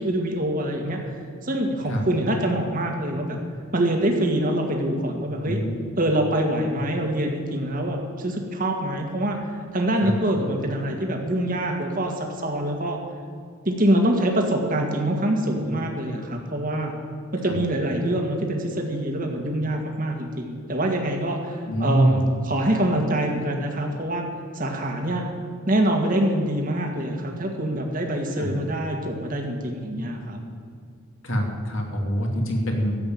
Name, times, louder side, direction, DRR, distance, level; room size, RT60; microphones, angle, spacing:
voice 1, 0.0-3.4 3.7-5.6 6.0-13.0 13.7-16.9 17.3-24.2 24.5-25.2 25.7-30.4, right 1 dB, 40° right, 2 dB, 1.8 m, -25 dB
voice 2, 5.4-5.8 10.0-10.2 17.4-17.6 21.7-22.2 28.4-28.5 31.2-32.9, equal, 65° left, 1 dB, 2.6 m, -24 dB
13.5 x 7.9 x 9.2 m, 2.4 s
head